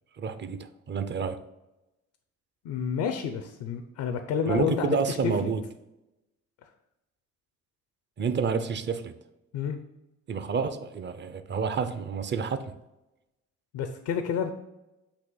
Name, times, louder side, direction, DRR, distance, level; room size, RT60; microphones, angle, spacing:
voice 1, 0.2-1.4 4.5-5.6 8.2-9.1 10.3-12.7, right 5 dB, 35° right, 0.6 m, -29 dB
voice 2, 2.6-5.5 9.5-9.8 13.7-14.5, left 7 dB, 90° left, 0.6 m, -29 dB
8.3 x 2.9 x 3.9 m
cardioid pair, 90°, 30 cm